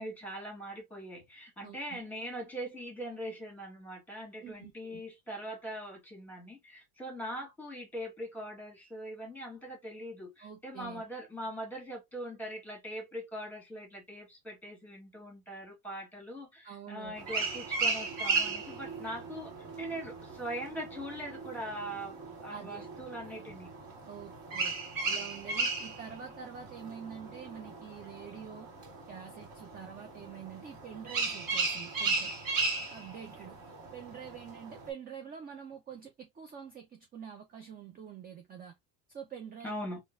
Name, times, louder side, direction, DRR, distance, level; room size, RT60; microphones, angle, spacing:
voice 1, 0.0-19.5 19.8-23.7 39.6-40.0, equal, 5° left, 1.7 m, -41 dB
voice 2, 1.6-2.0 4.4-5.0 10.4-11.0 16.6-17.2 22.5-22.9 24.1-24.7 25.1-28.7 29.1-32.3 32.9-33.6 33.9-38.8 39.1-39.7, right 8 dB, 20° right, 0.5 m, -46 dB
sound 1, 17.2-34.9, right 4 dB, 50° right, 2.1 m, -36 dB
3.7 x 2.5 x 2.6 m
cardioid pair, 135°, 43 cm